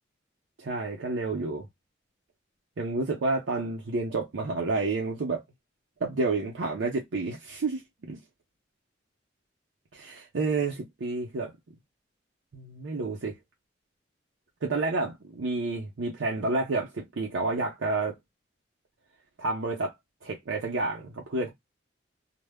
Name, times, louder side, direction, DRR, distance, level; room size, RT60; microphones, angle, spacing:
voice 1, 0.6-1.7 2.8-5.4 6.0-8.2 9.9-11.5 12.5-13.4 14.6-18.1 19.4-19.9 20.2-21.5, right 3 dB, 80° right, 0.6 m, -30 dB
2.1 x 2.0 x 3.3 m
head